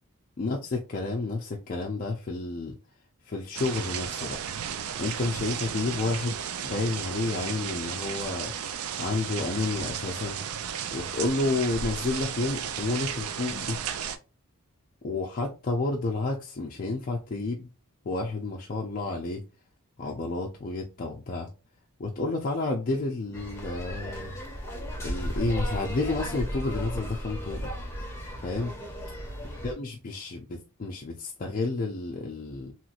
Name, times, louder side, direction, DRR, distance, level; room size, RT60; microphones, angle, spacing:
voice 1, 0.4-2.7 3.2-4.4 5.0-6.4 6.6-8.5 9.0-10.4 10.9-13.8 15.0-17.7 18.0-19.4 20.0-21.5 22.0-24.4 25.0-27.7 28.4-28.8 29.6-32.7, left 3 dB, 40° left, 0.4 m, -30 dB
sound 1, 3.5-14.2, right 8 dB, 70° right, 0.4 m, -34 dB
sound 2, 23.3-29.7, equal, 15° left, 1.5 m, -35 dB
3.0 x 3.0 x 2.4 m
head